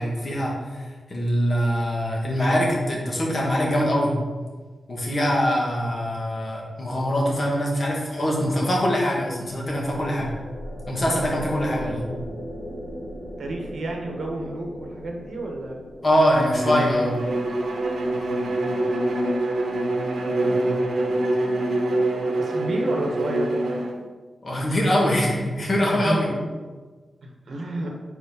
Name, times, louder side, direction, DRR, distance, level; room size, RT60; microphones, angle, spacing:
voice 1, 0.0-4.1 4.9-10.3 10.9-12.0 16.0-17.1 24.4-26.3, equal, 35° left, -3 dB, 1.6 m, -23 dB
sound 1, 9.5-20.8, equal, 30° right, 1.9 m, -39 dB
voice 2, 13.4-15.8 20.2-23.5 26.0-26.5 27.2-27.9, right 1 dB, 65° right, 1 dB, 1.2 m, -32 dB
Bowed string instrument, 16.5-24.0, right 1 dB, 85° right, 0.9 m, -25 dB
5.1 x 4.4 x 5.6 m, 1.4 s
wide cardioid pair, 160°, 0 cm